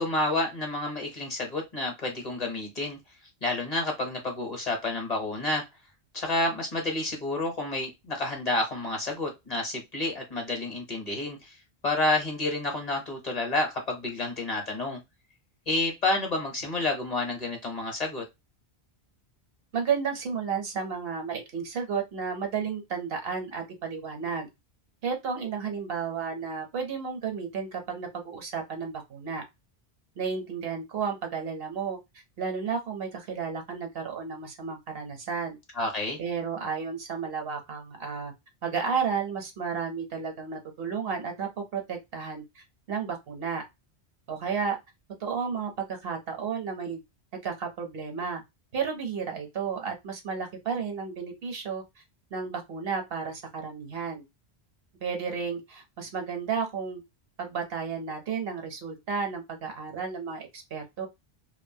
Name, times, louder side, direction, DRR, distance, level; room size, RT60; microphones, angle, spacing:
voice 1, 0.0-3.0 3.4-5.6 6.1-11.5 11.8-15.0 15.7-18.3 35.7-36.2, left 2 dB, 40° left, 2 dB, 0.9 m, -29 dB
voice 2, 19.7-24.5 25.0-29.4 30.2-32.0 32.4-35.6 36.2-38.3 38.6-43.6 44.3-44.8 45.2-47.0 47.3-48.4 48.7-51.8 52.3-54.2 55.0-57.0 57.4-61.1, right 6 dB, 65° right, 4 dB, 1.0 m, -32 dB
2.6 x 2.2 x 2.6 m, 0.20 s
omnidirectional pair, 1.1 m